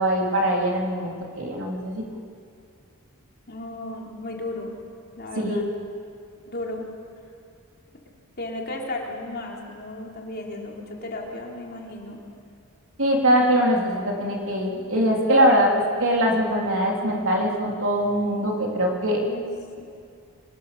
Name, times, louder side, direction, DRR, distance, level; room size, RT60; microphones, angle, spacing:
voice 1, 0.0-2.0 5.4-5.6 13.0-15.7 16.0-19.2, equal, 60° right, -1 dB, 3.7 m, -22 dB
voice 2, 3.5-4.8 5.2-5.7 6.5-6.9 8.4-12.2 19.3-19.5 19.8-19.9, left 2 dB, 45° left, -1 dB, 3.6 m, -34 dB
25.5 x 20.0 x 7.0 m, 2.4 s
head